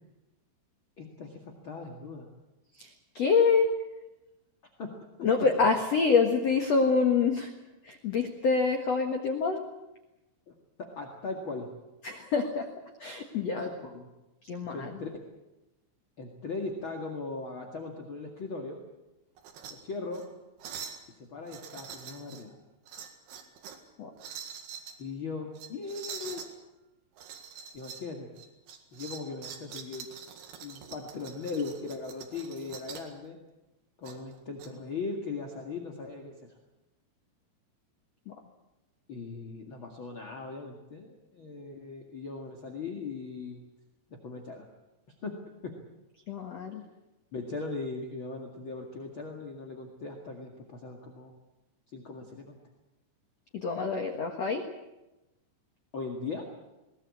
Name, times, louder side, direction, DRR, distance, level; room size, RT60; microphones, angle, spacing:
voice 1, 1.0-2.3 4.8-4.9 10.5-10.6 10.9-11.7 13.6-14.1 14.7-15.1 16.2-18.8 19.7-20.2 21.1-22.6 25.0-26.4 27.7-28.3 28.9-30.1 30.6-33.4 34.0-36.3 39.1-43.6 44.2-44.6 45.2-45.3 45.6-45.7 47.3-51.3 51.9-52.6 55.9-56.4, left 4 dB, 45° left, 1 dB, 1.6 m, -39 dB
voice 2, 2.8-3.7 5.2-7.5 7.8-9.6 12.0-12.7 13.0-13.6 14.5-14.9 24.0-24.1 38.3-38.4 46.3-46.8 53.5-54.6, left 5 dB, 85° left, 4 dB, 1.4 m, -26 dB
sound 1, 19.4-19.7 20.1-20.3 20.6-21.0 21.5-22.4 22.9-23.8 24.2-25.0 25.6-26.5 27.2-28.1 28.4-33.1 34.0-34.7, right 7 dB, 60° right, 3.5 m, -44 dB
21.0 x 19.0 x 8.6 m, 0.99 s
omnidirectional pair, 5.6 m